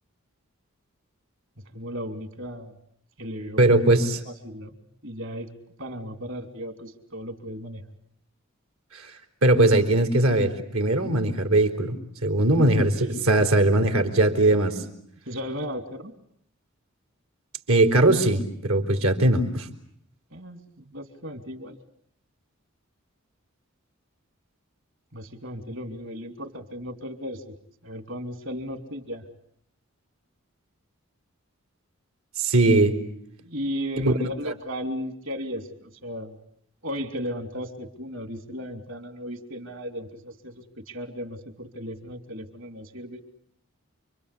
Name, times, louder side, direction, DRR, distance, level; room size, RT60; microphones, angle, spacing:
voice 1, 1.7-2.8 3.2-3.7 4.2-4.7 5.0-5.5 5.8-7.8 13.1-13.3 15.3-16.1 20.3-21.8 25.1-27.5 27.8-29.2 33.4-36.4 36.8-43.2, equal, 60° right, 9 dB, 3.3 m, -35 dB
voice 2, 3.6-4.2 8.9-9.1 9.4-11.9 12.2-14.8 17.7-19.7 32.4-33.0 34.0-34.1, right 2 dB, 85° right, 7 dB, 4.0 m, -20 dB
29.5 x 24.0 x 8.5 m, 0.68 s
head